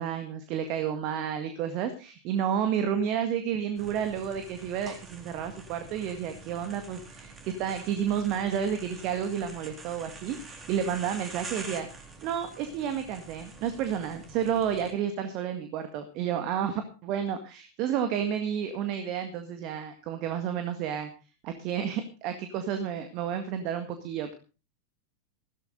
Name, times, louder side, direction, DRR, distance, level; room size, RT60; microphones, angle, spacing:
voice 1, 0.0-11.9 12.2-21.1 21.4-24.3, right 8 dB, 40° right, 7 dB, 1.8 m, -31 dB
sound 1, 3.8-14.9, right 3 dB, 20° right, 3.8 m, -46 dB
16.0 x 13.5 x 3.9 m, 0.34 s
figure-of-eight pair, 90°, 0 cm